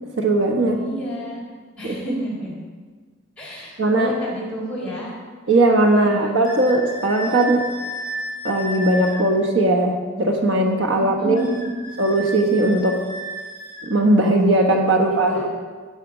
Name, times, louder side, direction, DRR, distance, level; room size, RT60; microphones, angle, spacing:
voice 1, 0.2-0.8 1.8-1.9 3.8-4.1 5.5-7.6 8.4-11.4 12.0-13.0 13.8-15.5, right 2 dB, 75° right, 2 dB, 1.4 m, -18 dB
voice 2, 0.7-1.4 1.8-2.6 3.4-5.2 5.9-6.4 10.9-11.8 15.1-15.5, equal, 5° left, -7 dB, 4.2 m, -30 dB
sound 1, 6.4-9.2 11.4-13.9, equal, 30° right, 2.7 m, -33 dB
13.5 x 8.6 x 5.1 m, 1.5 s
head